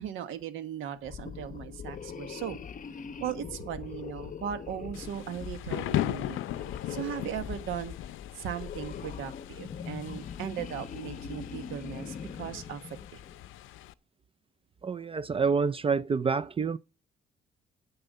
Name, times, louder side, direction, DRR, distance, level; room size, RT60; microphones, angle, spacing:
voice 1, 0.0-2.6 3.2-7.9 8.3-12.8 13.1-13.2, right 9 dB, 90° right, 1.3 m, -38 dB
sound 1, 1.0-13.5, left 7 dB, 40° left, 0.8 m, -42 dB
Thunder / Rain, 4.9-13.9, left 14 dB, 90° left, 0.5 m, -38 dB
voice 2, 14.8-16.8, right 5 dB, 30° right, 0.4 m, -27 dB
9.1 x 7.9 x 5.4 m
cardioid pair, 90°, 20 cm